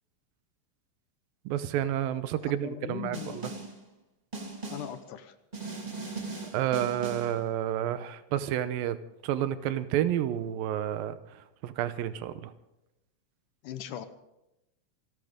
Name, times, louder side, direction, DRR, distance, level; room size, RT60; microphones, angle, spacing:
voice 1, 1.5-3.5 6.5-9.0 9.2-11.2 11.6-12.5, right 11 dB, 90° right, 2.6 m, -30 dB
voice 2, 2.4-3.5 4.7-5.3 13.6-14.1, left 10 dB, 75° left, 2.3 m, -39 dB
Snare drum, 3.1-3.8 4.3-5.0 5.5-7.4, right 3 dB, 20° right, 1.2 m, -39 dB
26.5 x 13.0 x 3.7 m
omnidirectional pair, 4.0 m